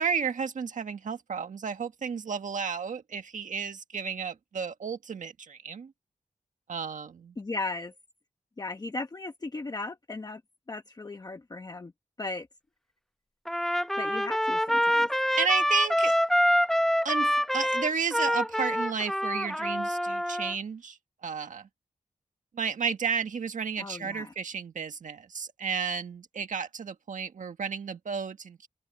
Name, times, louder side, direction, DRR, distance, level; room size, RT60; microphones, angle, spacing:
voice 1, 0.0-5.9 6.7-7.3 15.4-16.1 17.0-21.0 21.2-21.7 22.5-28.7, right 6 dB, 85° right, 1.7 m, -32 dB
voice 2, 7.4-7.9 8.6-10.4 10.7-11.9 12.2-12.5 14.0-15.1 23.8-24.3, left 3 dB, 30° left, 1.1 m, -36 dB
Trumpet, 13.5-20.5, equal, ahead, 0.7 m, -26 dB
open air
wide cardioid pair, 135°, 13 cm